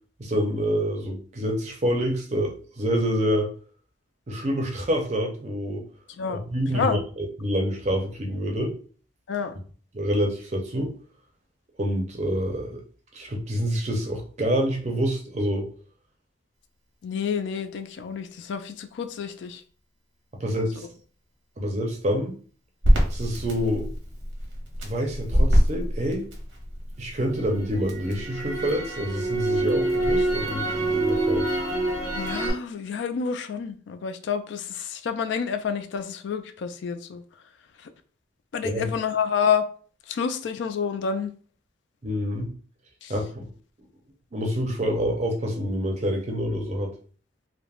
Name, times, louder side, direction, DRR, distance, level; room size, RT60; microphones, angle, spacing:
voice 1, 0.2-3.5 4.3-5.8 6.3-7.0 7.4-8.8 9.9-11.0 11.8-12.8 13.1-15.7 20.4-20.9 21.6-22.4 23.1-23.9 24.8-26.3 27.0-31.5 38.6-38.9 42.0-42.5 43.1-43.4 44.3-46.9, equal, 35° right, 0.5 m, -27 dB
voice 2, 17.0-19.6 32.1-37.2 37.8-37.9 38.5-39.6 40.1-41.3 43.0-43.1, left 6 dB, 70° left, 0.3 m, -28 dB
Crackle, 22.8-27.0 27.4-32.5, right 1 dB, 90° right, 0.9 m, -24 dB
3.3 x 2.0 x 2.3 m
head